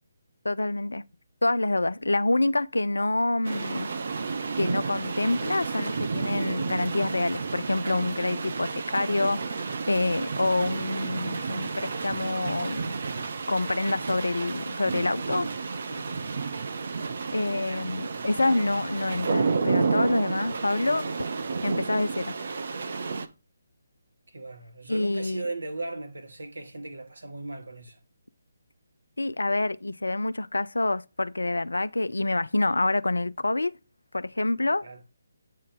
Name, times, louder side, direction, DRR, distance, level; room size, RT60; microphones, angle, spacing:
voice 1, 0.4-1.0 1.4-3.9 4.6-12.9 13.5-15.5 17.3-21.1 21.6-22.3 24.9-25.5 29.2-33.7 34.1-34.9, left 2 dB, 70° left, 0.3 m, -27 dB
sound 1, 3.4-23.3, right 4 dB, 50° right, 0.6 m, -31 dB
voice 2, 15.9-16.4 17.5-17.9 23.0-23.3 24.3-28.0 34.8-35.0, right 2 dB, 65° right, 1.2 m, -38 dB
8.4 x 3.2 x 3.8 m
figure-of-eight pair, 145°, 0 cm